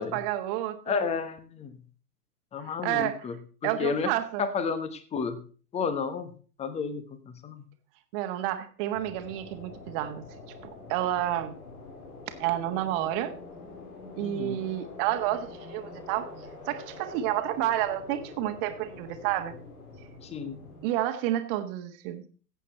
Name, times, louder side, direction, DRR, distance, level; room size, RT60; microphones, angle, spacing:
voice 1, 0.0-1.1 2.6-3.2 3.6-4.4 8.1-10.2 10.9-11.5 12.3-13.3 14.2-16.3 16.7-19.5 20.8-22.2, right 13 dB, 35° right, 8 dB, 1.5 m, -30 dB
voice 2, 0.9-1.8 2.5-3.3 3.6-4.1 4.4-5.4 5.7-6.3 6.6-7.6 14.2-14.6 20.2-20.6, left 5 dB, 15° left, 11 dB, 1.1 m, -31 dB
sound 1, 8.9-20.9, left 3 dB, 65° left, 3.5 m, -45 dB
15.0 x 8.2 x 4.3 m, 0.40 s
figure-of-eight pair, 115°, 48 cm